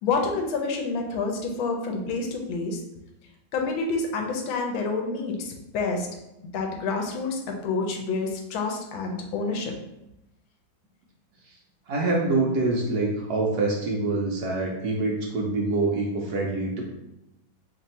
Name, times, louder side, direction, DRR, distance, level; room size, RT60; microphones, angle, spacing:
voice 1, 0.0-2.8 3.5-6.1 6.5-9.7, left 4 dB, 85° left, 2 dB, 1.4 m, -28 dB
voice 2, 11.9-16.8, right 3 dB, 70° right, -1 dB, 0.9 m, -25 dB
3.3 x 2.6 x 4.1 m, 0.90 s
omnidirectional pair, 2.1 m